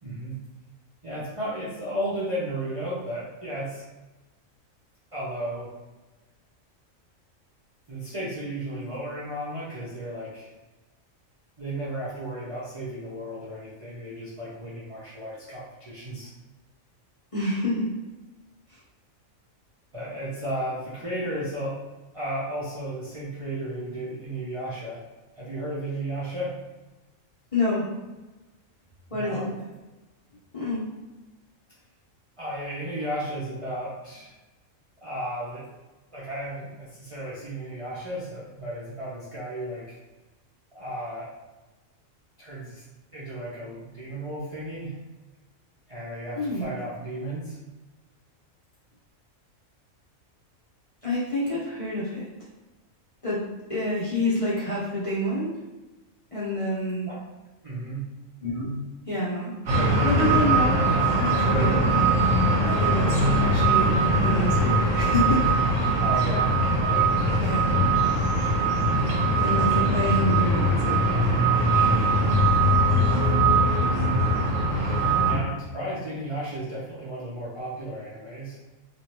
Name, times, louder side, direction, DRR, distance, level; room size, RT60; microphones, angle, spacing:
voice 1, 0.0-0.4 1.0-3.8 5.1-5.7 7.9-10.5 11.6-16.3 19.9-21.8 22.1-25.0 25.3-26.6 29.1-29.5 32.4-34.3 35.0-35.7 36.1-40.0 40.7-41.3 42.4-42.8 43.1-45.0 45.9-47.6 57.1-57.2 57.6-58.1 66.0-66.5 75.2-78.6, right 1 dB, 40° right, -9 dB, 0.5 m, -34 dB
voice 2, 17.3-17.9 27.5-27.9 29.1-29.5 30.5-30.9 46.4-46.7 51.0-52.3 53.2-53.4 53.7-55.5 56.3-57.1 58.4-58.8 59.1-59.6 60.0-61.8 62.6-63.9 64.2-65.5 66.1-66.3 66.9-67.0 67.4-67.6 68.3-68.6 69.4-71.0, left 1 dB, 35° left, -9 dB, 0.6 m, -28 dB
sound 1, 59.7-75.4, right 1 dB, 65° right, 1.1 m, -21 dB
3.1 x 2.4 x 2.8 m, 1.1 s
omnidirectional pair, 1.4 m